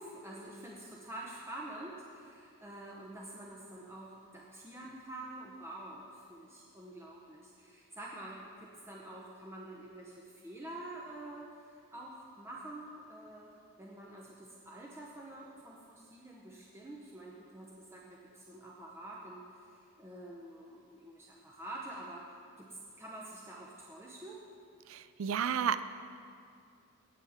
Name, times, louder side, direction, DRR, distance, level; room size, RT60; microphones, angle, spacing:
voice 1, 0.0-13.5 13.8-24.4, right 1 dB, 10° right, -4 dB, 0.7 m, -47 dB
voice 2, 24.9-25.8, right 8 dB, 75° right, 14 dB, 0.4 m, -32 dB
18.0 x 7.3 x 3.5 m, 2.4 s
head